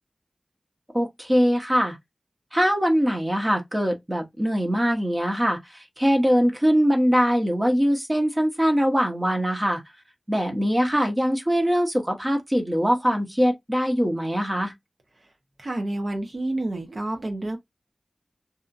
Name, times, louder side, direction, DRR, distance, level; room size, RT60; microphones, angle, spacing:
voice 1, 0.9-2.0 2.5-9.8 10.3-14.7, equal, 20° right, 1.0 m, -22 dB
voice 2, 15.6-17.6, right 1 dB, 65° right, 0.9 m, -29 dB
2.8 x 2.5 x 2.5 m
wide cardioid pair, 55°, 0 cm